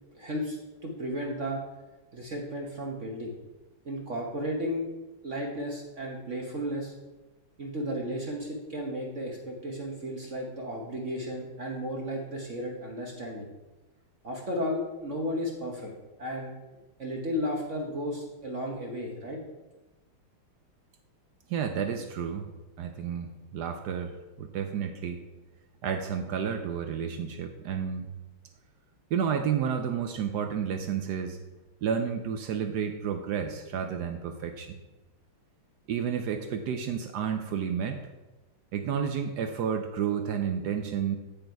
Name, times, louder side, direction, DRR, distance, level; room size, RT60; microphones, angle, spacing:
voice 1, 0.1-1.6 2.1-3.3 3.8-4.9 5.2-6.9 7.6-13.5 14.2-15.9 16.2-16.5 17.0-19.4, equal, 45° right, 0 dB, 1.0 m, -34 dB
voice 2, 21.5-22.5 22.8-25.2 25.8-28.1 29.1-31.4 31.8-34.8 35.9-38.0 38.7-41.2, right 7 dB, 80° right, 6 dB, 0.9 m, -31 dB
8.9 x 5.2 x 4.6 m, 1.1 s
omnidirectional pair, 2.4 m